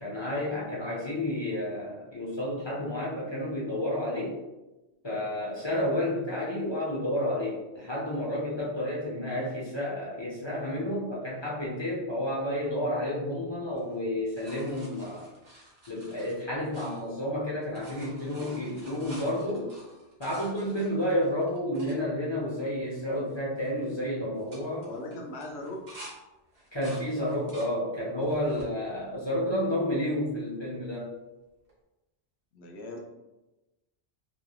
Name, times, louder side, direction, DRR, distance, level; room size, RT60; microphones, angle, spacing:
voice 1, 0.0-4.4 5.0-15.3 15.9-19.7 20.2-24.9 26.7-31.1, left 1 dB, 35° left, -6 dB, 0.5 m, -31 dB
sound 1, 13.7-17.4 17.6-22.0 22.6-22.7 22.9-23.3 23.6-23.9 24.3-26.2 26.5-27.7 28.2-28.7 29.3-30.1 31.7-31.8, right 1 dB, 40° right, 0.8 m, -50 dB
voice 2, 24.9-25.8 32.5-33.0, left 1 dB, 75° left, 2 dB, 0.8 m, -39 dB
3.0 x 2.5 x 2.3 m, 1.0 s
omnidirectional pair, 1.1 m